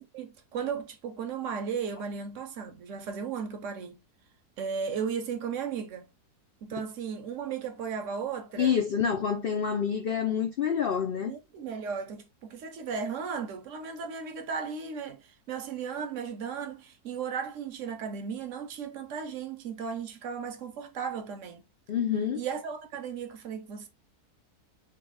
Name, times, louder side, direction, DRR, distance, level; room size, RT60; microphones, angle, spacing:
voice 1, 0.1-4.0 4.6-6.1 6.6-8.8 11.2-21.6 22.3-23.9, right 6 dB, 65° right, 0.9 m, -35 dB
voice 2, 8.6-11.3 21.9-22.4, left 7 dB, 85° left, 0.5 m, -27 dB
3.3 x 2.3 x 3.4 m
omnidirectional pair, 1.6 m